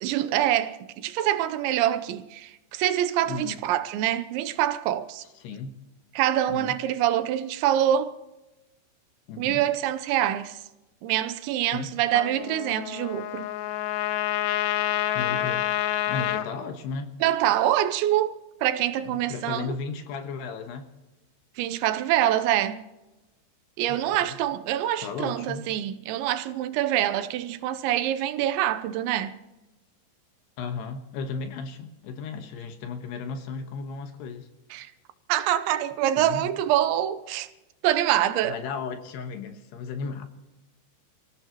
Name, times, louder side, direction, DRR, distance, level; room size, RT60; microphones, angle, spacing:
voice 1, 0.0-5.2 6.1-8.1 9.4-10.6 11.0-13.5 17.2-18.3 18.6-19.7 21.6-22.8 23.8-29.3 34.7-34.9 35.3-37.5 37.8-38.6, right 12 dB, 80° right, 3.0 m, -25 dB
voice 2, 3.3-3.6 5.3-5.8 6.5-6.8 9.3-9.6 11.7-11.9 15.1-15.7 16.1-17.2 19.0-20.9 23.9-24.4 25.0-25.7 30.6-34.5 36.2-36.5 38.5-40.3, left 5 dB, 70° left, 3.2 m, -35 dB
Trumpet, 12.1-16.5, left 12 dB, 85° left, 3.3 m, -28 dB
29.5 x 16.0 x 3.0 m
omnidirectional pair, 5.3 m